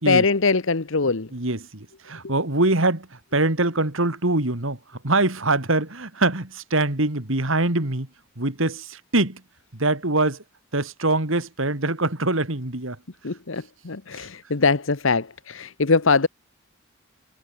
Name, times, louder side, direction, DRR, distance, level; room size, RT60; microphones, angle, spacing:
voice 1, 0.0-1.3 13.2-16.3, left 4 dB, 65° left, 1.1 m, -22 dB
voice 2, 1.3-3.1 3.3-4.8 5.0-8.1 8.4-9.4 9.8-10.4 10.7-13.0, right 2 dB, 65° right, 2.9 m, -23 dB
head